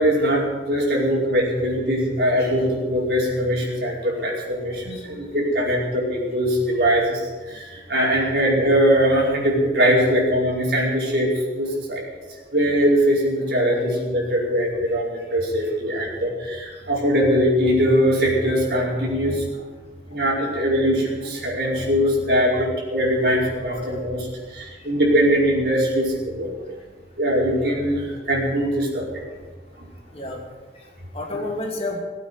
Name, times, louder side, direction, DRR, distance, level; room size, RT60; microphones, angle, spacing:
voice 1, 0.0-7.2 7.4-11.3 11.6-12.0 12.5-19.4 20.1-24.3 24.5-26.5 27.2-29.0, equal, 65° right, -3 dB, 5.0 m, -21 dB
voice 2, 30.7-32.0, left 2 dB, 35° left, 0 dB, 2.5 m, -31 dB
18.0 x 8.8 x 8.3 m, 1.3 s
head